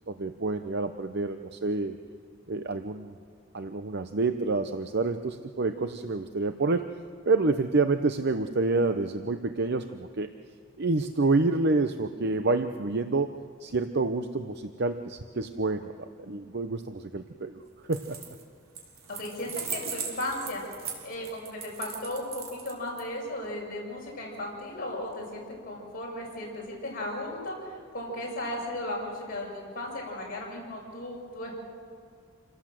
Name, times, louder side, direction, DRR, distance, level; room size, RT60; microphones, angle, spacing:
voice 1, 0.1-2.0 2.5-3.1 3.5-6.9 7.3-10.3 10.8-13.3 13.6-15.9 16.3-17.6 17.9-18.2, right 3 dB, 55° right, 8 dB, 0.8 m, -28 dB
sound 1, 17.8-18.4 18.7-23.0, right 6 dB, 75° right, 4.7 m, -38 dB
voice 2, 19.2-20.7 21.0-31.5, left 1 dB, 45° left, -3 dB, 6.8 m, -36 dB
28.0 x 18.0 x 7.7 m, 2.1 s
head